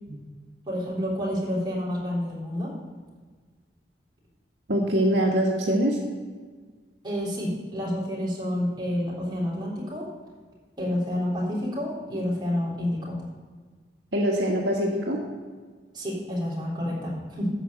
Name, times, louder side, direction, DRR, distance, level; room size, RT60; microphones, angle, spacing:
voice 1, 0.7-2.7 7.0-10.0 10.8-13.2 15.9-17.5, left 1 dB, 25° right, -6 dB, 3.6 m, -29 dB
voice 2, 4.7-6.0 14.1-15.2, equal, 75° right, -2 dB, 1.6 m, -23 dB
13.5 x 4.9 x 7.9 m, 1.5 s
head